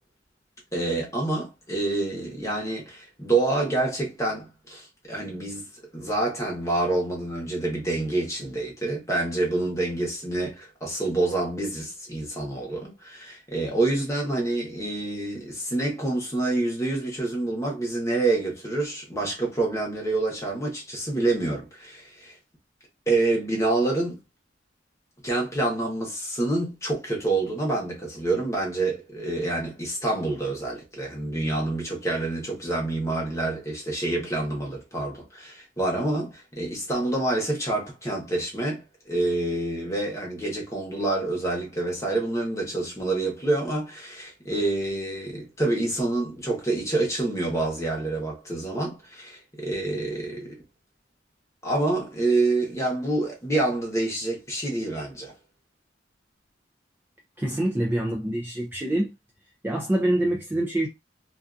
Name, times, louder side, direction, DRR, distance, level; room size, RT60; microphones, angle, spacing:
voice 1, 0.7-5.7 5.9-22.4 23.1-24.2 25.2-50.6 51.6-55.3, right 2 dB, 15° left, 0.9 m, -27 dB
voice 2, 57.4-59.1 59.6-60.9, right 1 dB, 10° right, 0.4 m, -25 dB
2.5 x 2.3 x 2.5 m
head